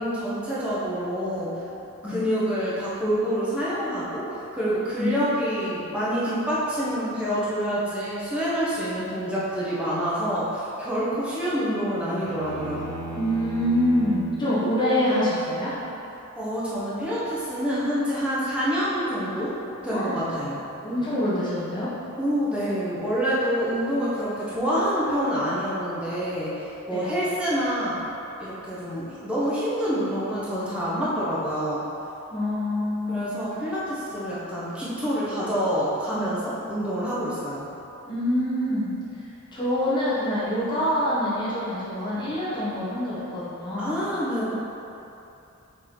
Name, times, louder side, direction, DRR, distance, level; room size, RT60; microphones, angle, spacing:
voice 1, 0.0-1.6 2.0-4.2 4.5-12.9 16.4-19.5 19.8-20.6 22.2-28.0 28.4-31.8 33.1-37.7 43.8-44.5, equal, 5° right, -10 dB, 1.2 m, -27 dB
sound 1, 12.2-14.5, right 1 dB, 85° right, 1.0 m, -35 dB
voice 2, 13.1-15.7 19.9-20.2 20.8-21.9 26.9-27.1 32.3-33.3 38.0-38.9 39.5-44.0, left 1 dB, 20° left, -11 dB, 1.3 m, -25 dB
6.6 x 4.3 x 3.9 m, 2.9 s
head